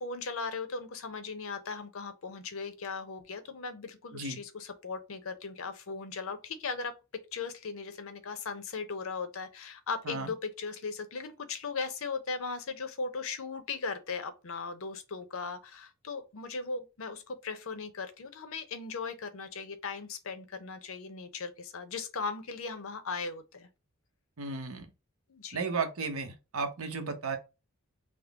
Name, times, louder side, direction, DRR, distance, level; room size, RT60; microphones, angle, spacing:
voice 1, 0.0-23.7 25.3-25.7, left 4 dB, 70° left, 0.6 m, -38 dB
voice 2, 24.4-24.9 25.5-27.4, right 4 dB, 70° right, 0.8 m, -34 dB
3.6 x 2.0 x 3.4 m
head